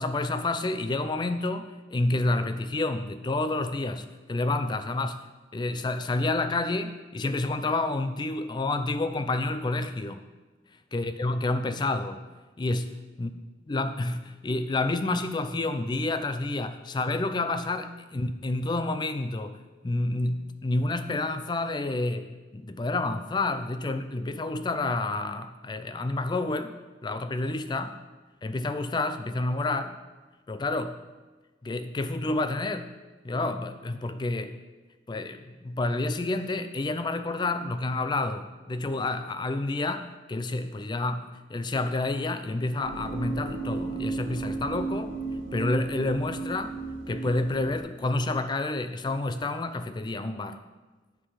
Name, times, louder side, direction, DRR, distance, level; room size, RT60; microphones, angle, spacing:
voice 1, 0.0-5.2 5.5-10.2 10.9-12.2 12.6-13.3 13.7-19.6 19.8-26.7 27.0-27.9 28.4-30.0 30.5-31.0 31.6-32.9 33.2-34.6 35.1-45.1 45.5-46.7 47.1-50.6, left 2 dB, 20° left, 10 dB, 0.3 m, -29 dB
sound 1, 42.8-47.8, right 3 dB, 90° right, 2.3 m, -34 dB
10.0 x 3.8 x 4.9 m, 1.3 s
head